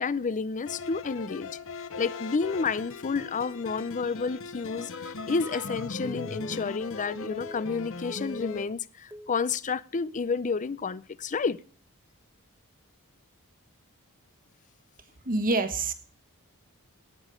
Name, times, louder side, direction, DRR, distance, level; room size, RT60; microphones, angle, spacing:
voice 1, 0.0-1.5 2.0-11.6, left 4 dB, 35° left, 0.5 m, -30 dB
sound 1, 0.7-8.7, left 4 dB, 60° left, 0.8 m, -39 dB
Telephone, 4.8-7.8 8.1-8.8 9.1-9.4, equal, 10° right, 1.0 m, -43 dB
voice 2, 15.2-15.9, right 2 dB, 40° right, 1.5 m, -26 dB
18.0 x 6.3 x 5.0 m
head